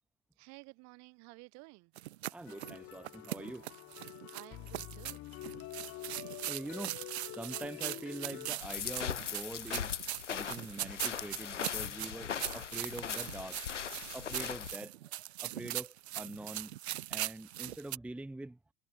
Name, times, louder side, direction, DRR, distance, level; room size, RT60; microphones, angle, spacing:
voice 1, 0.4-1.9 4.3-5.3 6.6-6.7, right 29 dB, 45° right, 3.3 m, -53 dB
sound 1, 2.0-18.0, right 15 dB, 60° right, 0.7 m, -41 dB
voice 2, 2.3-3.7 6.4-7.0 7.2-9.9 10.3-13.6 14.1-16.8 17.1-18.6, right 1 dB, 5° right, 0.8 m, -44 dB
sound 2, 2.5-8.5, left 16 dB, 40° left, 2.7 m, -47 dB
sound 3, 8.6-14.8, left 8 dB, 75° left, 1.8 m, -39 dB
figure-of-eight pair, 80°, 36 cm